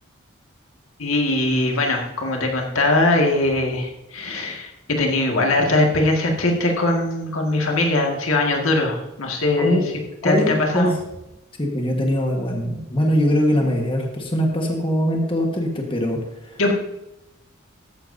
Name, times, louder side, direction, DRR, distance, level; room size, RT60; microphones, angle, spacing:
voice 1, 1.0-9.8 10.2-10.9 16.6-16.7, left 2 dB, 80° left, 1 dB, 2.0 m, -21 dB
voice 2, 10.2-10.9 11.6-16.6, equal, 25° left, 1 dB, 1.5 m, -22 dB
14.0 x 10.5 x 2.7 m, 0.92 s
head